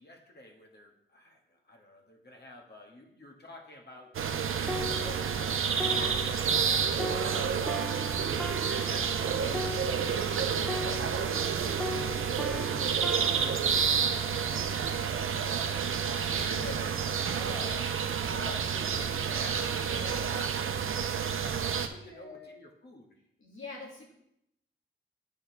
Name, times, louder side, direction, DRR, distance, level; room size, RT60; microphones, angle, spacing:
voice 1, 0.0-5.6 6.1-15.2 15.6-15.8 16.6-23.2, left 1 dB, 55° left, 1 dB, 1.5 m, -50 dB
sound 1, 4.1-21.9, right 7 dB, 85° right, 0.6 m, -29 dB
sound 2, 4.7-11.5 11.8-15.4 16.0-16.2, left 2 dB, ahead, 0.4 m, -40 dB
voice 2, 5.8-6.2 10.8-11.0 14.8-15.0 15.5-16.9 19.8-20.4 21.6-22.5 23.4-24.1, left 2 dB, 75° left, -2 dB, 2.5 m, -45 dB
7.8 x 4.7 x 4.6 m, 0.78 s
wide cardioid pair, 85°, 21 cm